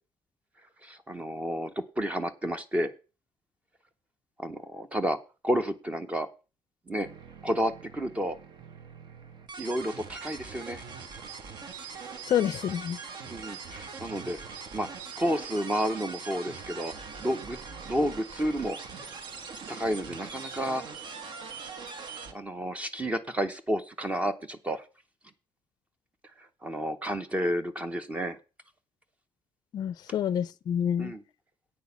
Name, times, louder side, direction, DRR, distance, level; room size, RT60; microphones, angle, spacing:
voice 1, 0.8-2.9 4.4-5.2 5.4-6.3 6.9-7.1 7.4-8.4 9.6-10.8 13.3-14.4 14.7-14.9 15.2-16.9 17.2-17.6 17.8-18.8 19.7-20.8 22.3-24.8 26.6-28.4 31.0-31.2, equal, 15° right, 0.7 m, -31 dB
sound 1, 7.0-22.3, right 5 dB, 55° right, 1.2 m, -42 dB
voice 2, 12.3-13.0 29.7-31.1, left 9 dB, 45° left, 0.4 m, -28 dB
8.7 x 6.3 x 6.9 m
cardioid pair, 175°, 9 cm